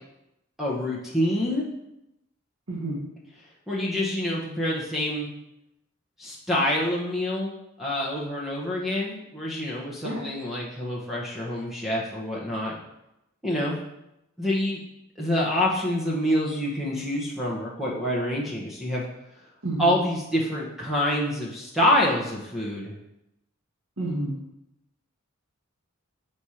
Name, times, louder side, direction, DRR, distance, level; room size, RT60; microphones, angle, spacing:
voice 1, 0.6-1.6 3.7-5.3 6.2-12.8 13.4-13.8 14.4-14.8 15.2-19.0 19.8-22.9, left 1 dB, ahead, -5 dB, 1.0 m, -26 dB
voice 2, 2.7-3.0 10.0-10.2 19.6-19.9 24.0-24.4, right 1 dB, 75° right, -4 dB, 1.4 m, -29 dB
7.1 x 4.3 x 4.8 m, 0.89 s
head